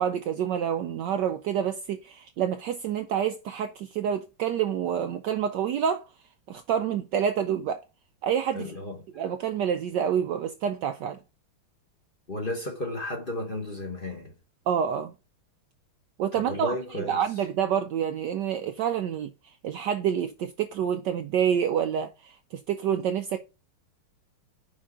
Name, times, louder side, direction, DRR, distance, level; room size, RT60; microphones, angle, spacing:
voice 1, 0.0-6.0 6.5-7.8 8.2-8.7 9.1-11.2 14.7-15.1 16.2-16.7 17.1-19.3 19.6-22.4 22.7-23.4, right 8 dB, 75° right, 1.0 m, -27 dB
voice 2, 8.5-9.1 12.3-14.3 16.3-17.2, left 1 dB, 30° left, 1.2 m, -33 dB
5.2 x 5.0 x 3.7 m
omnidirectional pair, 2.3 m